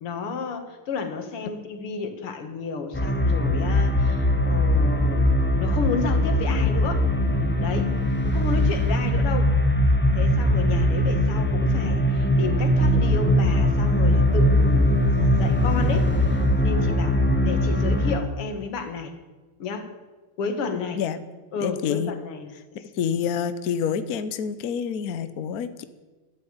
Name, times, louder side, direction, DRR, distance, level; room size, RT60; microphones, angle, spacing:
voice 1, 0.0-7.1 7.6-7.9 8.2-9.5 10.2-19.1 19.6-19.9 20.4-21.0 21.5-22.5, left 5 dB, 90° left, 7 dB, 2.5 m, -31 dB
sound 1, 2.9-18.2, left 1 dB, 5° left, 0.9 m, -21 dB
voice 2, 21.6-22.1 22.9-25.8, left 7 dB, 60° left, 11 dB, 1.0 m, -27 dB
13.0 x 10.5 x 8.9 m, 1.3 s
omnidirectional pair, 2.4 m